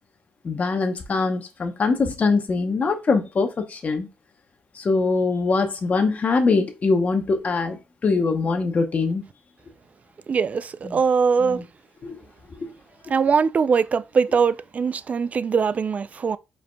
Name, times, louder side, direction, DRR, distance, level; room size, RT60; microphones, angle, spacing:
voice 1, 0.4-4.1 4.7-9.2 10.8-11.0 11.4-11.6 12.0-12.2 12.6-12.7, left 4 dB, 40° left, 0.8 m, -23 dB
voice 2, 10.3-11.6 13.1-16.4, right 5 dB, 40° right, 0.3 m, -21 dB
4.9 x 4.6 x 2.2 m
cardioid pair, 105°, 4 cm